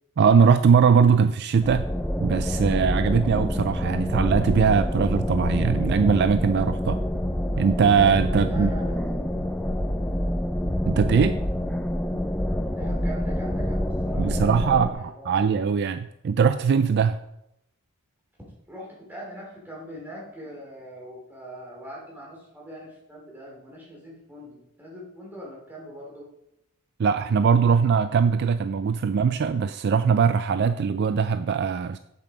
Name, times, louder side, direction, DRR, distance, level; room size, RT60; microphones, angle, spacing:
voice 1, 0.2-1.9 2.2-7.0 7.6-8.7 10.9-11.4 14.2-17.2 27.0-32.0, right 6 dB, 50° right, 11 dB, 0.3 m, -21 dB
sound 1, 1.6-14.9, left 1 dB, 5° left, 0.5 m, -26 dB
voice 2, 8.4-9.5 12.7-15.3 18.7-26.3, equal, 10° right, -4 dB, 3.1 m, -42 dB
7.7 x 7.4 x 4.9 m, 0.80 s
head